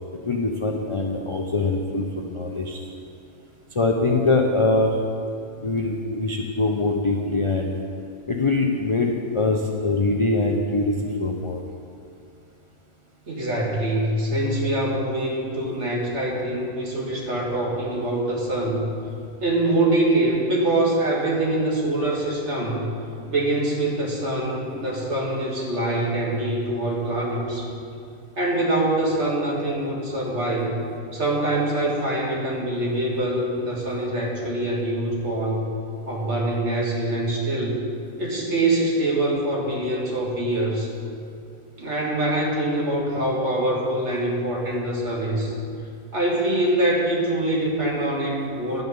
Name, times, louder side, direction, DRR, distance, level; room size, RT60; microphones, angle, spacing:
voice 1, 0.2-2.8 3.7-5.0 5.6-7.7 8.3-11.6, left 3 dB, 45° left, 0 dB, 0.3 m, -23 dB
voice 2, 13.3-18.9 19.4-22.9 23.3-27.7 28.4-30.8 31.1-35.7 36.1-37.8 38.2-40.9 41.8-45.5 46.1-48.8, right 1 dB, 50° right, -3 dB, 2.0 m, -24 dB
10.5 x 5.4 x 8.0 m, 2.5 s
omnidirectional pair, 1.6 m